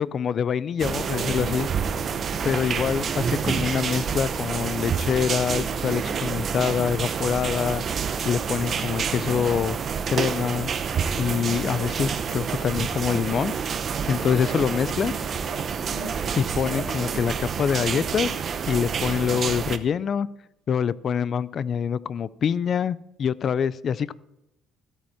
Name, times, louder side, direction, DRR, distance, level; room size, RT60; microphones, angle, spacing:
voice 1, 0.0-1.7 2.4-9.8 10.1-10.7 11.2-13.5 14.1-15.1 16.4-18.3 18.7-20.3 20.7-24.1, left 7 dB, 40° left, 19 dB, 0.4 m, -25 dB
sound 1, 0.8-19.8, right 6 dB, 35° right, 0.7 m, -28 dB
voice 2, 0.8-1.7 2.3-2.7 14.5-14.7 15.0-16.2, right 2 dB, 75° right, -1 dB, 3.3 m, -38 dB
14.0 x 8.5 x 4.8 m, 0.91 s
cardioid pair, 150°, 0 cm